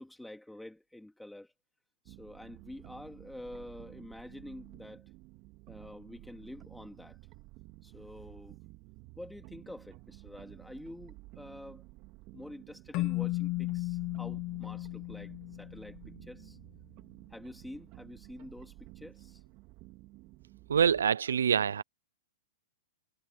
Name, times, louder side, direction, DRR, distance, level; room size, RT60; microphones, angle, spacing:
voice 1, 0.0-1.5 2.1-5.1 5.7-7.2 7.8-8.6 9.2-11.8 12.3-16.6 17.3-19.4, left 1 dB, 5° left, 3.5 m, -48 dB
sound 1, 2.1-21.1, right 22 dB, 45° right, 3.1 m, -53 dB
Keyboard (musical), 12.9-16.2, left 21 dB, 40° left, 0.9 m, -35 dB
voice 2, 20.7-21.8, right 8 dB, 85° right, 0.5 m, -25 dB
hypercardioid pair, 120°, 0 cm